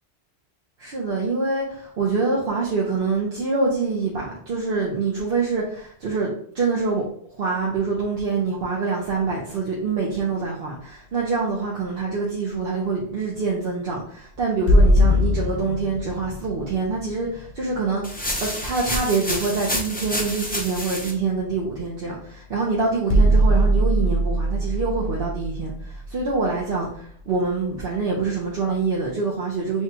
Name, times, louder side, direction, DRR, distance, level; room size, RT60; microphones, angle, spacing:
voice 1, 0.8-6.3 6.5-7.0 7.3-18.0 18.4-29.8, right 4 dB, 55° right, -4 dB, 0.9 m, -25 dB
sound 1, 14.7-18.4 22.1-22.2 23.1-27.0, equal, 50° left, 0.7 m, -21 dB
sound 2, 18.0-21.1, left 1 dB, 10° left, 0.5 m, -28 dB
6.0 x 2.3 x 2.8 m, 0.62 s
omnidirectional pair, 1.2 m